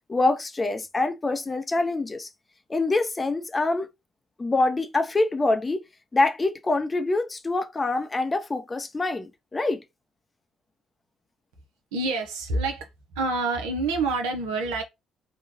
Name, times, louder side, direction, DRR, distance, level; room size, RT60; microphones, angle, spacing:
voice 1, 0.1-2.3 2.7-3.9 4.4-5.8 6.1-9.8, left 2 dB, 25° left, 0.6 m, -25 dB
voice 2, 11.9-12.9 13.1-14.8, right 3 dB, 75° right, 0.7 m, -27 dB
3.3 x 2.3 x 3.0 m
figure-of-eight pair, 50°, 0 cm